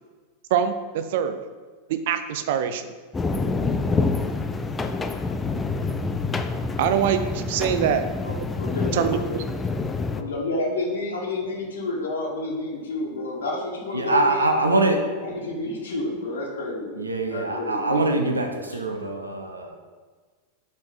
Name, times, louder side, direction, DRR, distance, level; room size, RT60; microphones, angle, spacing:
voice 1, 0.5-1.4 1.9-2.9 6.8-8.0 8.9-9.4, right 8 dB, 55° right, 10 dB, 0.4 m, -24 dB
sound 1, 3.1-10.2, left 3 dB, 15° left, 0.4 m, -27 dB
voice 2, 8.2-9.5 10.1-14.5 15.2-17.0 17.3-18.3 18.7-18.8, left 2 dB, 65° left, -2 dB, 1.2 m, -30 dB
voice 3, 13.9-15.1 17.0-19.8, right 2 dB, 80° right, 4 dB, 0.7 m, -23 dB
5.2 x 4.4 x 4.9 m, 1.5 s
figure-of-eight pair, 90°, 0 cm